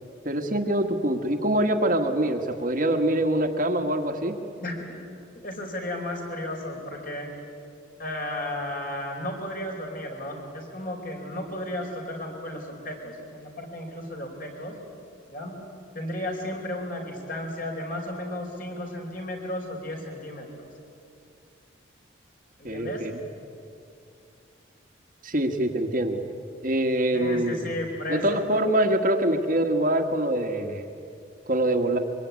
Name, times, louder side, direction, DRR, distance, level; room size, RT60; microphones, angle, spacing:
voice 1, 0.2-4.3 22.6-23.2 25.2-26.2 26.6-27.7 28.1-30.9 31.5-32.0, right 1 dB, 45° right, 4 dB, 1.7 m, -24 dB
voice 2, 4.6-5.0 5.4-7.3 8.0-14.7 15.3-15.6 15.9-20.6 22.6-23.1 27.1-28.4, left 1 dB, 45° left, 1 dB, 5.0 m, -34 dB
25.0 x 23.5 x 9.7 m, 2.6 s
head